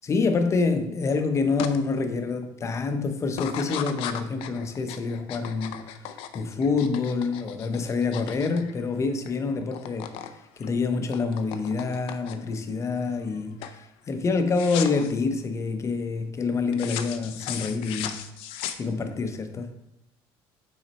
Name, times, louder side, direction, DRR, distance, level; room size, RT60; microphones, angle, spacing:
voice 1, 0.0-5.9 6.3-10.1 10.6-18.2 18.8-19.7, left 4 dB, 30° left, 0.7 m, -27 dB
sound 1, 1.6-1.8 2.2-2.6 3.3-9.4 9.6-10.3 10.6-12.6 13.1-13.4 13.6-13.8 14.5-15.1 16.7-19.2, left 10 dB, 75° left, 0.5 m, -36 dB
6.1 x 3.9 x 4.2 m
cardioid pair, 120°, 10 cm